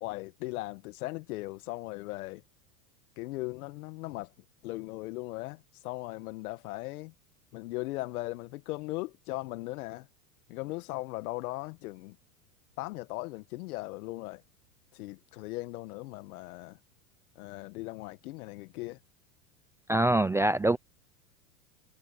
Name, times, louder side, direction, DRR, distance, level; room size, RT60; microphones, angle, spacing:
voice 1, 0.0-2.4 3.2-4.3 4.6-7.1 7.5-10.1 10.5-12.2 12.8-14.4 14.9-16.8 17.3-19.0, left 21 dB, 65° left, 1.7 m, -38 dB
voice 2, 19.9-20.8, right 1 dB, 5° right, 0.5 m, -24 dB
supercardioid pair, 120°, 47 cm